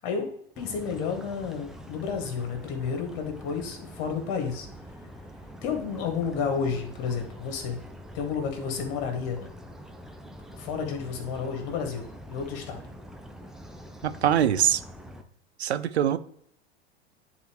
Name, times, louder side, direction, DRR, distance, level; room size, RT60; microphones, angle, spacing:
voice 1, 0.6-4.7 5.6-7.8 8.1-9.5 10.6-12.8, left 6 dB, 50° left, 4 dB, 2.0 m, -31 dB
sound 1, 0.6-15.2, equal, ahead, 0.7 m, -45 dB
voice 2, 14.0-14.8 15.6-16.2, right 10 dB, 80° right, 14 dB, 0.6 m, -23 dB
10.5 x 4.1 x 3.1 m, 0.68 s
figure-of-eight pair, 90°, 32 cm